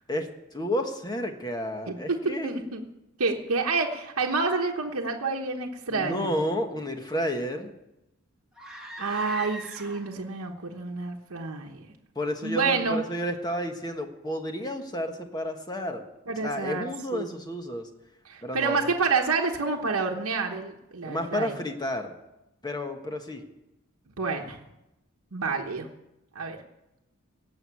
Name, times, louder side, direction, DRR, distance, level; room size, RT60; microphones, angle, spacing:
voice 1, 0.1-2.5 5.9-7.7 12.1-16.0 16.4-17.9 18.4-18.9 21.0-22.2 22.6-23.4, equal, 20° left, 5 dB, 1.4 m, -31 dB
voice 2, 1.9-2.8 3.2-6.3 9.0-11.9 12.4-13.0 16.3-16.8 17.1-17.3 18.3-21.5 24.2-24.6 25.3-25.9 26.3-26.6, right 4 dB, 80° right, 1 dB, 1.1 m, -28 dB
sound 1, 8.5-10.3, right 1 dB, 5° right, 1.9 m, -41 dB
17.0 x 6.3 x 8.5 m, 0.91 s
head